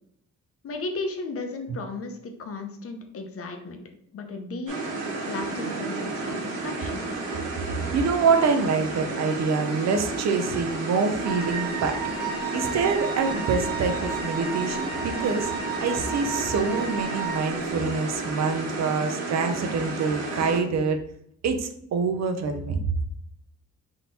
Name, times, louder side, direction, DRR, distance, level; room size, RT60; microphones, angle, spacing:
voice 1, 0.6-3.8 4.1-7.0, left 3 dB, 50° left, 5 dB, 0.7 m, -35 dB
sound 1, 4.7-20.6, right 3 dB, 85° right, 1.3 m, -32 dB
voice 2, 7.9-12.0 12.5-15.5 15.8-21.0 21.4-22.8, right 5 dB, 60° right, 7 dB, 0.6 m, -26 dB
Wind instrument woodwind instrument, 11.2-17.6, right 4 dB, 15° left, 1.1 m, -34 dB
3.6 x 2.9 x 4.0 m, 0.70 s
wide cardioid pair, 165°, 30 cm